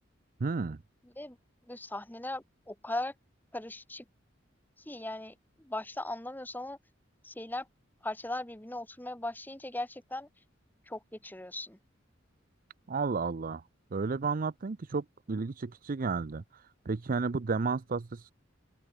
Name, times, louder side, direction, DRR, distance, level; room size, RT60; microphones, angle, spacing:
voice 1, 0.4-0.8 12.9-13.6 13.9-18.3, right 4 dB, 45° right, 0.5 m, -32 dB
voice 2, 1.7-3.1 3.5-4.0 4.8-6.8 7.2-7.7 8.0-10.3 10.9-11.8, left 1 dB, 10° left, 1.6 m, -38 dB
open air
head